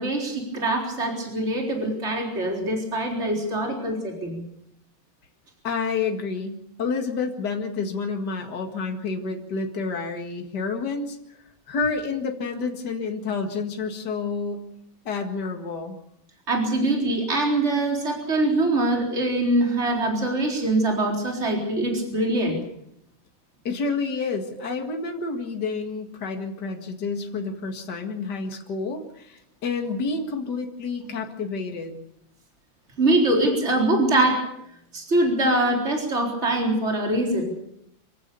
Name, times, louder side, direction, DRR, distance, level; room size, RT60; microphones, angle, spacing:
voice 1, 0.0-4.4 16.5-22.6 33.0-34.5 34.9-37.5, right 1 dB, 35° right, 0 dB, 4.4 m, -23 dB
voice 2, 5.6-11.2 11.7-14.6 15.1-16.0 23.6-31.9, left 4 dB, 55° left, 4 dB, 2.6 m, -29 dB
26.5 x 16.0 x 7.0 m, 0.76 s
omnidirectional pair, 2.2 m